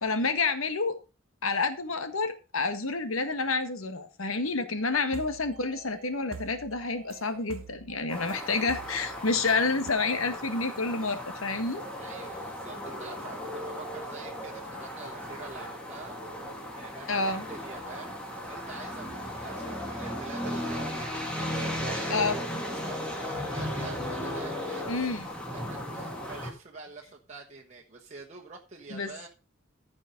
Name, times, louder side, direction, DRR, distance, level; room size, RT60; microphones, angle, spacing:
voice 1, 0.0-1.0 1.4-11.8 17.1-17.4 22.1-22.4 24.9-25.3 28.9-29.3, left 3 dB, 85° left, 9 dB, 1.7 m, -29 dB
sound 1, 4.8-9.9, right 5 dB, 75° right, 0.7 m, -47 dB
sound 2, 8.1-26.5, left 1 dB, 5° left, 2.6 m, -36 dB
voice 2, 12.0-16.2 16.7-22.3 22.7-25.1 25.9-29.3, right 4 dB, 35° right, -1 dB, 1.3 m, -46 dB
14.5 x 5.4 x 5.2 m, 0.32 s
head